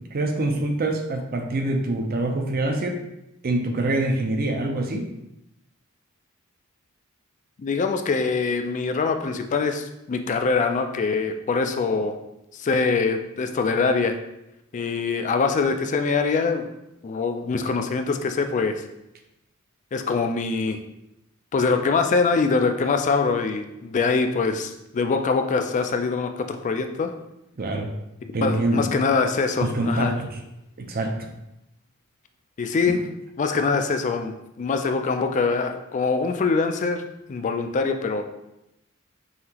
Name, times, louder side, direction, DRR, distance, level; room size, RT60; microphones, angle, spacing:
voice 1, 0.0-3.0 3.4-5.1 27.6-27.9 28.3-28.8 29.6-30.3 30.8-31.3 32.9-33.0, right 2 dB, 45° right, 4 dB, 0.6 m, -25 dB
voice 2, 7.6-12.2 12.5-14.2 14.7-16.7 17.0-18.8 19.9-20.8 21.5-27.1 28.4-30.1 32.6-33.0 33.4-37.0 37.3-38.2, left 4 dB, 35° left, 7 dB, 0.3 m, -23 dB
5.7 x 2.8 x 2.8 m, 0.88 s
head